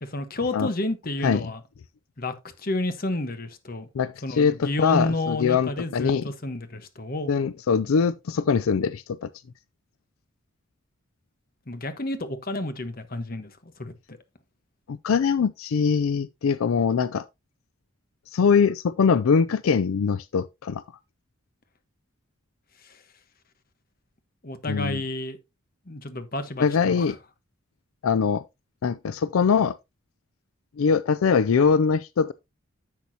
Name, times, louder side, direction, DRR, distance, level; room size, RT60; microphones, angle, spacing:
voice 1, 0.0-1.6 2.2-3.9 4.2-7.3 11.7-14.2 22.8-23.0 24.4-25.4 25.9-27.2, left 2 dB, 45° left, 1.2 m, -30 dB
voice 2, 4.0-6.2 7.3-9.3 14.9-17.2 18.3-20.8 24.7-25.0 26.6-27.2 28.0-28.4 28.8-29.8 30.8-32.3, left 6 dB, 80° left, 0.4 m, -22 dB
10.5 x 7.0 x 2.8 m
head